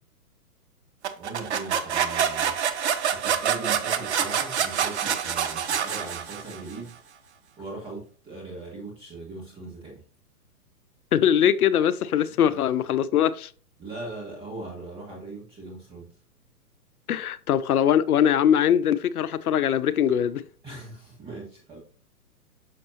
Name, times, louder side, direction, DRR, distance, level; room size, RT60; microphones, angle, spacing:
sound 1, 1.0-6.7, right 8 dB, 45° right, 0.8 m, -26 dB
voice 1, 1.2-2.6 3.1-6.9 7.6-10.0 12.4-12.5 13.8-16.0 20.6-21.8, right 3 dB, 10° right, 1.7 m, -39 dB
voice 2, 11.1-13.5 17.1-20.4, left 9 dB, 70° left, 0.6 m, -22 dB
6.6 x 6.5 x 2.8 m
hypercardioid pair, 135°, 46 cm